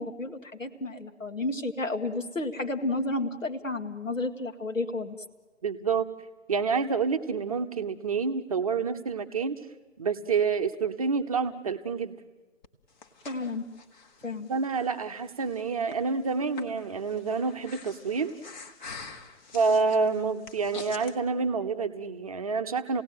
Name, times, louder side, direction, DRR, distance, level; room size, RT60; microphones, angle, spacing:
voice 1, 0.0-5.2 13.3-13.6 14.2-14.5, left 2 dB, 80° left, 6 dB, 2.1 m, -31 dB
voice 2, 5.6-6.1 6.5-9.6 10.0-12.2 14.5-18.3 19.5-23.0, right 5 dB, 30° right, 7 dB, 0.8 m, -28 dB
Breathing, 12.6-21.1, left 4 dB, 35° left, 1.6 m, -47 dB
28.5 x 17.5 x 9.3 m, 1.3 s
figure-of-eight pair, 140°, 38 cm